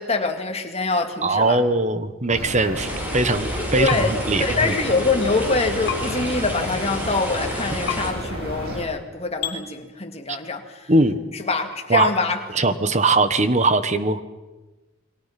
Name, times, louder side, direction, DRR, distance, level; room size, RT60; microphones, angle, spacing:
voice 1, 0.0-1.6 3.8-10.9 11.3-12.4, left 3 dB, 30° left, 5 dB, 2.2 m, -25 dB
voice 2, 1.2-4.7 10.3-10.4 10.9-11.2 11.9-12.1 12.5-14.2, right 2 dB, 35° right, 11 dB, 1.3 m, -20 dB
sound 1, 2.3-8.8, right 1 dB, 50° right, 6.5 m, -32 dB
sound 2, 2.7-8.1, left 1 dB, 10° right, 4.8 m, -31 dB
sound 3, 3.9-4.0 5.9-6.0 7.9-8.0 9.4-9.6, left 9 dB, 55° left, 3.3 m, -26 dB
29.0 x 23.0 x 6.0 m, 1.2 s
head